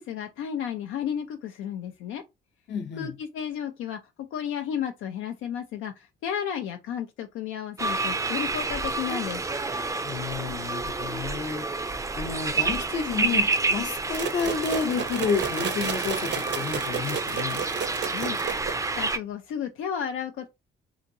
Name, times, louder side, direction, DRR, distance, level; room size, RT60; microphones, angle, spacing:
voice 1, 0.0-2.2 3.0-4.0 4.3-9.4 18.1-18.7 19.0-20.5, left 9 dB, 85° left, 0.5 m, -33 dB
voice 2, 2.7-3.2 10.0-11.6 12.2-17.6, left 6 dB, 60° left, 0.8 m, -30 dB
sound 1, 7.8-19.2, right 3 dB, 15° right, 0.4 m, -29 dB
sound 2, 14.1-19.0, right 7 dB, 60° right, 0.6 m, -33 dB
2.8 x 2.6 x 2.7 m
cardioid pair, 90°, 20 cm